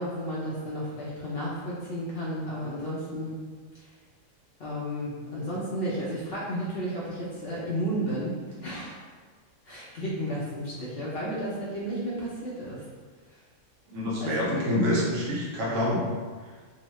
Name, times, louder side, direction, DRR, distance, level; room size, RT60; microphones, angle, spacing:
voice 1, 0.0-3.4 3.7-3.9 4.6-9.1 9.6-12.8 13.3-13.4 14.2-14.7, equal, 60° left, -7 dB, 0.7 m, -33 dB
voice 2, 13.9-16.0, left 1 dB, 70° right, -5 dB, 1.0 m, -26 dB
3.0 x 2.1 x 3.0 m, 1.5 s
omnidirectional pair, 1.4 m